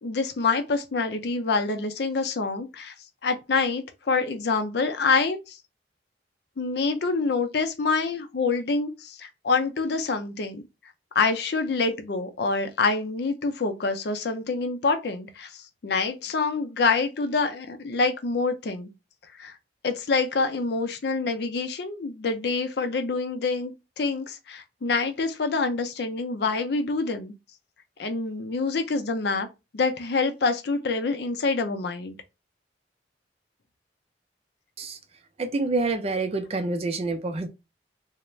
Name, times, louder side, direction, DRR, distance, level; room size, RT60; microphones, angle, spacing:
voice 1, 0.0-2.9 3.2-5.6 6.6-10.6 11.1-18.9 19.4-19.6 19.8-27.3 28.0-29.5 29.7-32.2, left 4 dB, 60° left, 0.5 m, -26 dB
voice 2, 35.4-37.5, right 3 dB, 35° right, 0.4 m, -27 dB
3.1 x 2.1 x 2.3 m
head